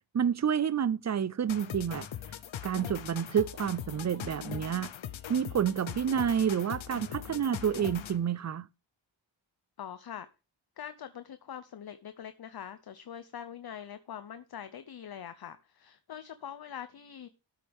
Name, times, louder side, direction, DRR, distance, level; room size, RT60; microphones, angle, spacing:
voice 1, 0.1-2.1 2.6-4.9 5.3-8.7, right 8 dB, 40° right, 0.4 m, -29 dB
sound 1, 1.5-8.3, left 10 dB, 85° left, 0.8 m, -41 dB
voice 2, 9.8-10.3 10.8-17.3, left 9 dB, 55° left, 0.7 m, -43 dB
13.0 x 7.7 x 3.5 m
wide cardioid pair, 140°, 46 cm